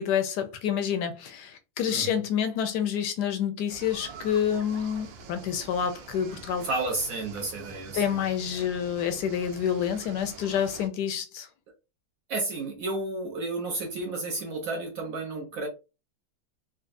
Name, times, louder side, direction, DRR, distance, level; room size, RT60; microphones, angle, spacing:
voice 1, 0.0-6.7 7.9-11.5, left 8 dB, 75° left, 1.0 m, -28 dB
voice 2, 1.9-2.2 6.6-8.2 8.5-8.7 12.3-15.7, right 2 dB, 65° right, 0.9 m, -32 dB
sound 1, 3.7-10.9, right 5 dB, 80° right, 1.4 m, -45 dB
3.9 x 2.3 x 2.5 m
omnidirectional pair, 2.1 m